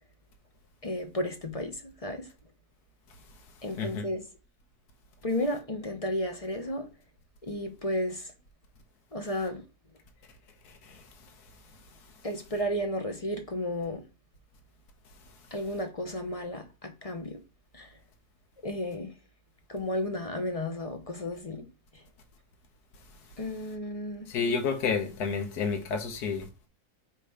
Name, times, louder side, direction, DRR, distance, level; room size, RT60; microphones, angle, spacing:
voice 1, 0.8-2.3 3.6-4.2 5.2-6.9 7.4-8.3 9.1-9.6 12.2-14.0 15.5-17.4 17.7-17.9 18.6-19.1 19.7-21.7 21.9-22.0 23.4-24.3, left 1 dB, 30° left, 0.7 m, -33 dB
voice 2, 3.7-4.0 10.6-11.0 24.3-26.5, left 5 dB, 85° left, 1.6 m, -30 dB
4.9 x 3.7 x 5.6 m
omnidirectional pair, 1.6 m